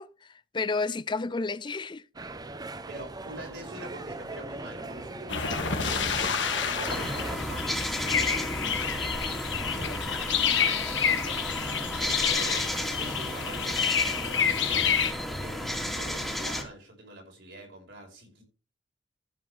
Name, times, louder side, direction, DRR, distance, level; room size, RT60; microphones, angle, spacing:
voice 1, 0.0-2.0, left 4 dB, 25° left, 0.4 m, -31 dB
sound 1, 2.1-7.4, right 2 dB, 20° right, 0.7 m, -39 dB
voice 2, 2.9-5.5 5.8-6.4 6.7-14.9 15.4-18.4, right 1 dB, 65° right, 5.4 m, -45 dB
sound 2, 5.3-15.1, left 7 dB, 70° left, 1.7 m, -29 dB
sound 3, 6.8-16.6, equal, ahead, 2.3 m, -33 dB
14.5 x 7.5 x 3.4 m
head